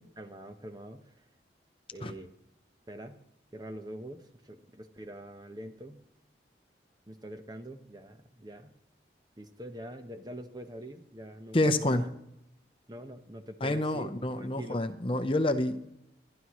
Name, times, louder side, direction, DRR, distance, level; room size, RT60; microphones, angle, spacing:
voice 1, 0.2-1.3 1.9-2.3 2.9-3.2 3.5-6.0 7.1-8.8 9.4-12.1 12.9-14.1 14.4-14.8, equal, 20° right, 7 dB, 1.0 m, -44 dB
voice 2, 11.5-12.0 13.6-15.8, left 1 dB, 30° left, 9 dB, 0.8 m, -28 dB
27.0 x 11.0 x 3.1 m, 0.82 s
head